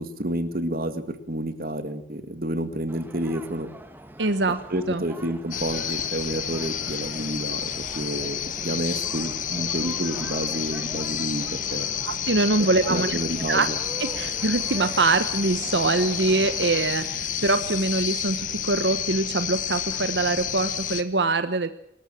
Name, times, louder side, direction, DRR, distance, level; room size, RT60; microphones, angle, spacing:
voice 1, 0.0-3.7 4.7-11.9 12.9-13.8, right 1 dB, 55° right, 11 dB, 2.0 m, -30 dB
sound 1, 2.9-16.9, right 1 dB, 10° right, 1.8 m, -43 dB
voice 2, 4.2-4.6 4.9-5.0 12.1-13.2 13.5-13.7 14.1-21.7, right 3 dB, 85° right, 10 dB, 1.1 m, -24 dB
sound 2, 5.5-21.0, left 9 dB, 45° left, 1.5 m, -30 dB
25.5 x 13.5 x 7.6 m, 0.80 s
head